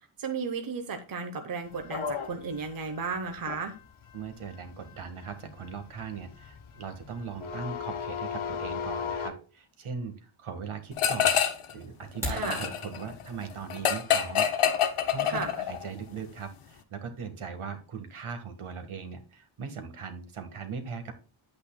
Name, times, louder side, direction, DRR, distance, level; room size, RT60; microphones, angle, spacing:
voice 1, 0.2-3.7 12.3-12.7 15.2-15.5, right 5 dB, 45° right, 6 dB, 1.0 m, -34 dB
sound 1, 1.8-9.3, left 6 dB, 70° left, 1.3 m, -37 dB
voice 2, 4.1-11.4 11.7-14.5 15.1-15.4 15.7-21.1, right 6 dB, 75° right, 7 dB, 1.6 m, -39 dB
sound 2, 11.0-11.7 12.0-15.8, left 9 dB, 90° left, 1.2 m, -26 dB
sound 3, 12.0-12.5, left 1 dB, 5° right, 4.3 m, -34 dB
9.5 x 8.5 x 2.2 m, 0.36 s
wide cardioid pair, 175°, 50 cm